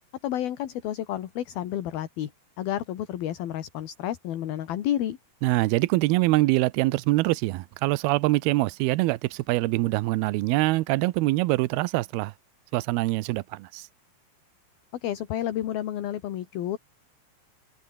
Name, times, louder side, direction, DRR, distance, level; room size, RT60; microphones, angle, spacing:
voice 1, 0.2-2.3 2.6-5.2 15.0-16.8, left 12 dB, 65° left, 3.4 m, -30 dB
voice 2, 5.4-12.3 12.7-13.9, right 19 dB, 80° right, 2.4 m, -24 dB
omnidirectional pair, 5.0 m